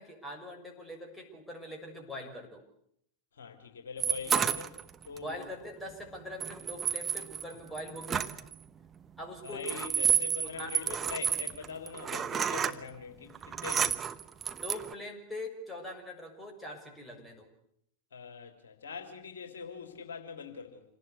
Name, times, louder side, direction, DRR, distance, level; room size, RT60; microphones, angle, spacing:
voice 1, 0.0-2.6 4.3-4.4 5.1-8.3 9.2-9.7 10.5-11.0 14.5-17.5, left 1 dB, 5° left, 1 dB, 6.5 m, -43 dB
voice 2, 3.3-4.7 5.0-5.4 9.4-13.9 18.1-20.8, left 5 dB, 65° left, 5 dB, 3.2 m, -42 dB
sound 1, 4.0-5.2 6.4-8.5 9.5-12.7 13.3-14.9, right 8 dB, 20° right, 1.1 m, -30 dB
27.0 x 19.0 x 8.3 m, 0.71 s
figure-of-eight pair, 90°, 0 cm